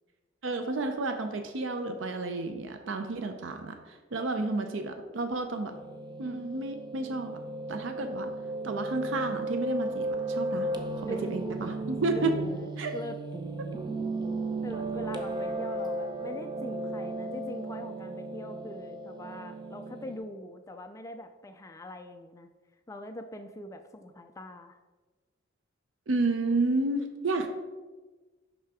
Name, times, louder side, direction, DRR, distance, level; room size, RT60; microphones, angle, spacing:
voice 1, 0.4-5.7 6.2-7.4 7.7-8.3 8.6-10.7 11.0-12.4 12.8-12.9 26.1-27.5, right 3 dB, 70° right, 6 dB, 0.6 m, -31 dB
Piano, 5.7-20.2, right 2 dB, 25° right, 0.6 m, -35 dB
voice 2, 12.1-13.2 14.6-22.5 22.9-24.8, left 1 dB, 15° left, 7 dB, 0.3 m, -43 dB
5.9 x 5.6 x 4.8 m, 1.3 s
head